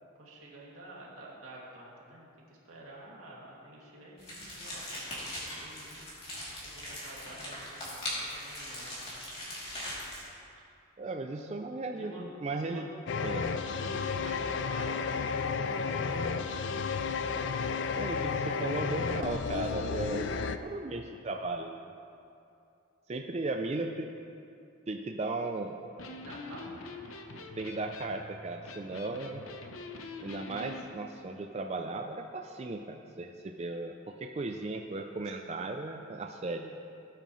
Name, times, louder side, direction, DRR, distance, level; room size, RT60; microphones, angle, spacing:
voice 1, 0.2-2.3 2.7-5.0 5.3-6.0 6.6-9.5 9.8-9.9 11.2-11.4 12.0-12.2 12.6-12.9 13.6-16.4 26.1-26.9, right 1 dB, 85° right, -5 dB, 2.5 m, -49 dB
sound 1, 4.2-10.3, left 1 dB, 25° left, 3.0 m, -40 dB
voice 2, 11.0-12.9 13.2-13.5 13.8-13.9 17.9-21.8 23.1-24.1 24.9-25.8 27.6-29.4 30.2-36.7, right 2 dB, 30° right, 3 dB, 0.4 m, -36 dB
sound 2, 13.1-20.6, left 5 dB, 55° left, 0.4 m, -32 dB
Electric guitar, 25.8-30.9, left 3 dB, 75° left, 0.8 m, -45 dB
16.5 x 9.1 x 3.2 m, 2.6 s
head